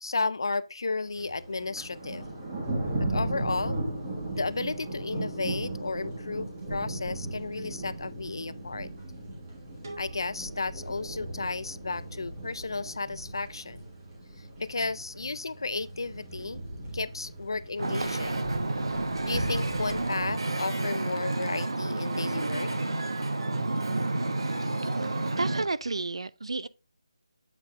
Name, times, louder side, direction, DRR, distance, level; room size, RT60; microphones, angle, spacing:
voice 1, 0.0-2.2 3.0-3.8 4.3-8.9 10.0-13.9 14.4-16.6 16.9-18.4 19.2-22.7, left 3 dB, 55° left, 0.4 m, -33 dB
Thunder, 1.1-20.3, right 2 dB, 15° right, 1.5 m, -37 dB
sound 1, 9.8-12.7, right 2 dB, 35° right, 1.6 m, -51 dB
Wind / Ocean, 17.8-25.7, right 2 dB, 60° right, 1.3 m, -30 dB
voice 2, 24.9-26.7, right 3 dB, 75° right, 0.5 m, -32 dB
7.9 x 4.0 x 3.7 m
figure-of-eight pair, 180°, 3 cm